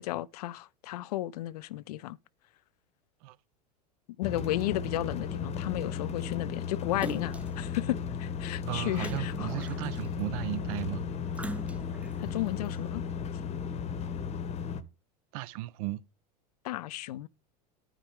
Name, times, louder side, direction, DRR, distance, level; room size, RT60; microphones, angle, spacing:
voice 1, 0.0-2.2 4.2-9.5 12.2-13.0 16.6-17.3, left 15 dB, 70° left, 0.5 m, -34 dB
sound 1, 4.2-14.8, left 6 dB, 30° left, 0.9 m, -35 dB
Splash splatter, 7.0-7.6 9.0-10.2 11.3-12.1 12.7-12.8, right 2 dB, 5° right, 0.5 m, -41 dB
voice 2, 8.7-11.5 15.3-16.0, right 17 dB, 60° right, 0.6 m, -36 dB
9.9 x 4.5 x 3.4 m
hypercardioid pair, 85°, 21 cm